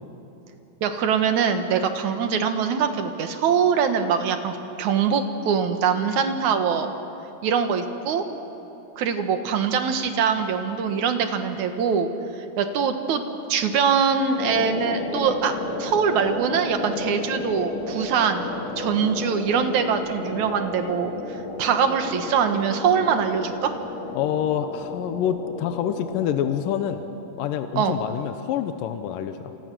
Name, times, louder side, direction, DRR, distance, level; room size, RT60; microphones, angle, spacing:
voice 1, 0.8-6.9 7.4-8.2 9.0-12.1 12.4-13.2 13.5-15.5 15.8-18.5 18.8-23.7 27.8-28.0, right 6 dB, 60° right, 7 dB, 2.5 m, -23 dB
sound 1, 14.4-26.9, left 3 dB, 50° left, 3.3 m, -33 dB
voice 2, 24.1-27.0 27.4-29.5, left 9 dB, 75° left, 8 dB, 2.4 m, -27 dB
29.0 x 27.0 x 6.2 m, 3.0 s
omnidirectional pair, 4.2 m